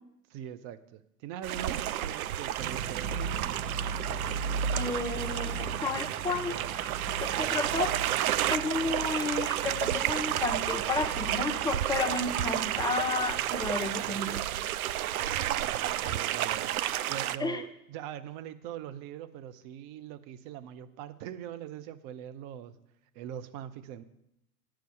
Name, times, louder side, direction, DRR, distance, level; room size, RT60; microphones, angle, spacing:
voice 1, 0.3-3.6 15.3-16.8 17.1-22.7 23.1-24.0, right 10 dB, 40° right, 11 dB, 0.9 m, -42 dB
sound 1, 1.4-17.4, right 12 dB, 65° right, 0.6 m, -31 dB
sound 2, 2.6-15.5, right 4 dB, 15° right, 0.5 m, -39 dB
voice 2, 4.7-6.9 7.2-7.9 8.5-14.4 17.4-17.6, left 3 dB, 10° left, 5 dB, 1.0 m, -32 dB
9.2 x 6.9 x 8.7 m, 0.80 s
figure-of-eight pair, 95°, 47 cm